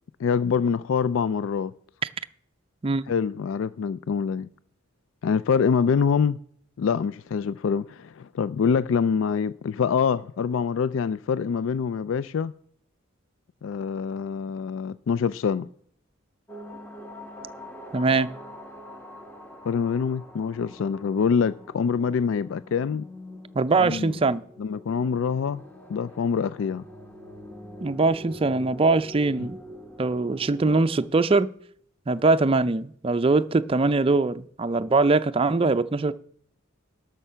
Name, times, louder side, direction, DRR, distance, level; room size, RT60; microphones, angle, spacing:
voice 1, 0.2-1.7 3.1-4.5 5.2-6.4 6.8-12.5 13.6-15.7 19.6-23.0 23.8-24.1 24.6-25.6 25.9-26.8, left 6 dB, 75° left, 0.3 m, -25 dB
sound 1, 16.5-31.1, left 1 dB, 10° left, 1.1 m, -44 dB
voice 2, 17.9-18.3 23.5-24.4 27.8-29.6 30.0-31.5 32.1-36.1, right 3 dB, 30° right, 0.4 m, -22 dB
12.0 x 6.8 x 5.6 m
head